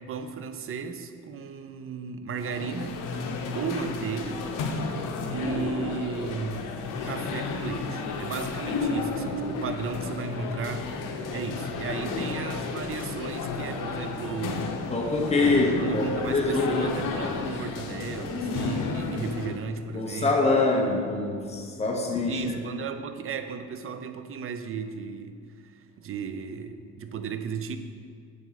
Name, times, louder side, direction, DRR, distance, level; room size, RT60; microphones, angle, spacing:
voice 1, 0.0-3.0 3.5-4.5 5.3-6.7 7.0-10.9 11.3-14.7 15.4-20.6 22.3-25.4 25.7-27.8, right 6 dB, 45° right, 8 dB, 0.6 m, -35 dB
sound 1, 2.3-19.6, left 4 dB, 85° left, 0.8 m, -32 dB
voice 2, 14.9-16.9 17.2-17.3 19.9-22.4, left 2 dB, 20° left, 0 dB, 1.0 m, -25 dB
7.8 x 7.3 x 4.1 m, 2.1 s
cardioid pair, 115°, 32 cm